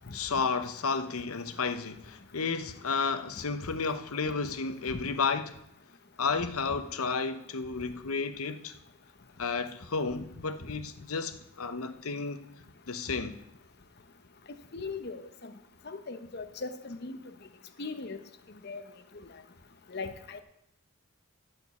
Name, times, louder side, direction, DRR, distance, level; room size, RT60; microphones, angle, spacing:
voice 1, 0.1-5.6 6.2-8.7 9.4-12.4 12.9-13.4, left 4 dB, 85° left, 0.8 m, -32 dB
voice 2, 14.7-15.5 15.8-17.2 17.8-18.2 18.6-18.8 19.9-20.4, left 3 dB, 50° left, 0.8 m, -38 dB
12.5 x 5.2 x 8.3 m
head